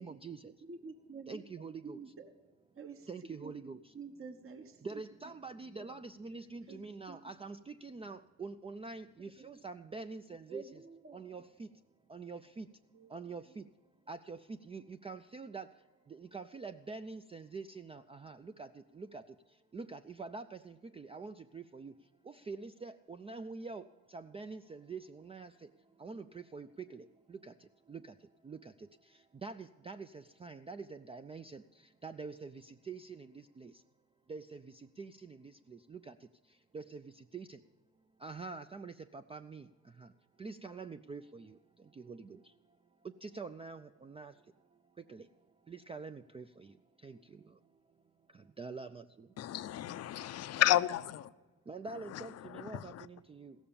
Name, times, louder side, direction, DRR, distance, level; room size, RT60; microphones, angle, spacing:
voice 1, 0.0-0.5 1.3-2.0 3.1-3.8 4.8-10.7 11.1-11.7 12.1-12.7 13.1-13.6 14.1-15.7 16.1-19.3 19.7-21.9 22.3-25.5 26.0-27.5 27.9-28.1 28.4-28.7 29.4-31.6 32.0-33.7 34.3-36.1 36.7-37.6 38.2-39.7 40.0-40.1 40.4-41.6 41.9-42.4 43.0-44.3 45.1-45.3 45.7-46.7 47.0-47.4 48.3-49.3 51.7-53.6, right 4 dB, 20° right, 0.4 m, -46 dB
voice 2, 0.6-2.3 2.7-5.0 5.8-5.9 6.7-6.8 7.1-7.2 9.4-9.5 10.5-11.2 12.9-13.1 13.5-13.6, right 5 dB, 45° right, 1.2 m, -49 dB
voice 3, 49.4-51.3 52.1-52.2 52.7-53.0, left 13 dB, 55° left, 0.5 m, -31 dB
16.0 x 7.3 x 6.9 m
cardioid pair, 90°, 30 cm